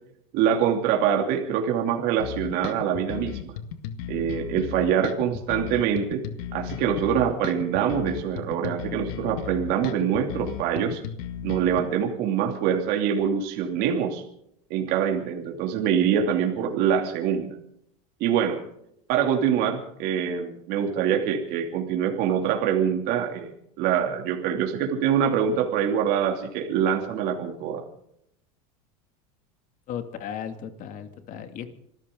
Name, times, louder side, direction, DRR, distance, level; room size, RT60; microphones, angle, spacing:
voice 1, 0.3-3.5 4.1-6.2 6.5-11.0 11.4-14.2 14.7-17.5 18.2-18.6 19.1-23.5 23.8-27.8, right 8 dB, 55° right, 2 dB, 2.9 m, -24 dB
sound 1, 2.2-11.8, left 10 dB, 70° left, 1.9 m, -35 dB
voice 2, 29.9-31.7, left 9 dB, 45° left, 8 dB, 2.5 m, -35 dB
26.5 x 14.0 x 3.9 m, 0.75 s
supercardioid pair, 125°, 19 cm